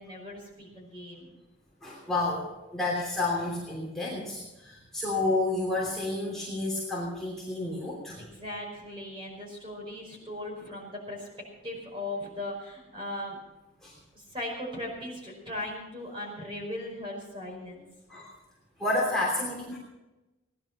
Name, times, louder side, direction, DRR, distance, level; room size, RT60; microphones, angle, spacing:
voice 1, 0.0-1.4 8.2-11.3 11.6-13.4 14.1-17.9, left 1 dB, 25° right, -1 dB, 5.1 m, -38 dB
voice 2, 1.8-8.2 13.8-13.9 18.1-18.3 18.8-19.8, left 2 dB, ahead, -5 dB, 3.0 m, -30 dB
17.5 x 11.0 x 5.8 m, 1.0 s
head